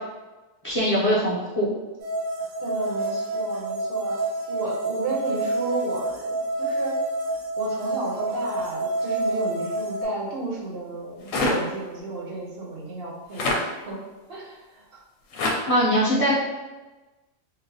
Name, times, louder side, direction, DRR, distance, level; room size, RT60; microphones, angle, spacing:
voice 1, 0.6-1.7 15.7-16.3, equal, 40° left, -9 dB, 0.6 m, -21 dB
sound 1, 2.0-10.0, right 2 dB, 80° right, 1.2 m, -28 dB
voice 2, 2.6-4.2 4.5-7.0 7.6-14.0 14.3-15.0, right 2 dB, 55° right, -4 dB, 0.8 m, -33 dB
Foley Fight Moves Struggling, 11.3-11.6 13.3-13.6 15.3-15.6, left 2 dB, 75° left, 0.9 m, -23 dB
3.7 x 2.0 x 2.6 m, 1.2 s
omnidirectional pair, 1.4 m